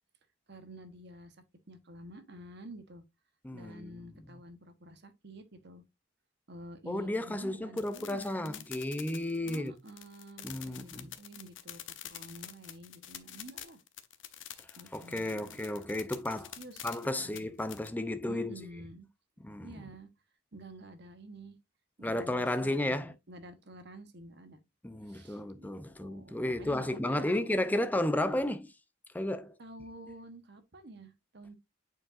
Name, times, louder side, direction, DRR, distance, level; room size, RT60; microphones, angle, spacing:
voice 1, 0.5-1.4 1.7-3.0 3.5-5.8 6.5-8.6 9.4-13.8 14.8-15.7 16.6-17.5 18.3-19.1 19.6-20.1 20.5-21.6 22.0-24.6 25.1-25.7 26.0-27.4 28.2-28.4 29.6-31.6, right 1 dB, 55° right, 1.1 m, -50 dB
voice 2, 3.4-3.9 6.9-9.7 10.4-11.1 14.9-16.5 16.8-18.6 19.4-19.7 22.0-23.1 24.8-28.7 29.1-29.5, left 1 dB, 10° left, 0.5 m, -33 dB
sound 1, 7.8-17.9, left 11 dB, 65° left, 0.7 m, -47 dB
8.5 x 4.8 x 2.5 m
head